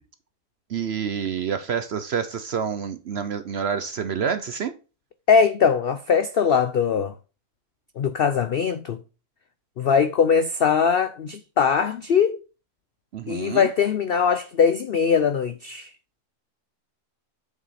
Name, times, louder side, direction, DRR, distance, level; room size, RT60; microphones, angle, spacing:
voice 1, 0.7-4.7 13.1-13.7, right 7 dB, 60° right, 0.7 m, -28 dB
voice 2, 5.3-7.1 8.0-9.0 9.8-12.4 13.3-15.9, left 6 dB, 85° left, 0.5 m, -21 dB
7.4 x 6.1 x 4.1 m
omnidirectional pair, 1.7 m